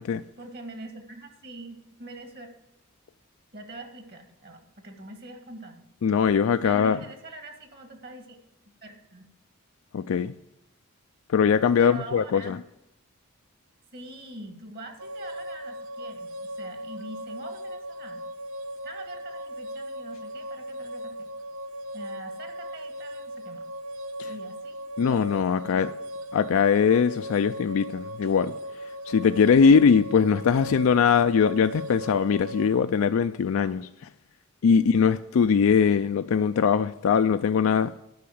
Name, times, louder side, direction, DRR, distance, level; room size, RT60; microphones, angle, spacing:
voice 1, 0.4-2.5 3.5-5.8 6.6-8.4 8.7-9.3 11.8-12.5 13.9-18.3 18.8-21.3 21.9-23.7 24.3-24.9 25.6-25.7 34.7-35.0, right 2 dB, 50° right, 1.9 m, -43 dB
voice 2, 6.0-7.0 9.9-10.3 11.3-12.6 24.2-24.3 25.0-25.9 26.3-28.5 29.1-33.9 34.6-37.9, left 6 dB, 75° left, 0.4 m, -21 dB
sound 1, 15.0-32.8, equal, 65° right, 0.5 m, -38 dB
12.0 x 5.6 x 7.8 m
head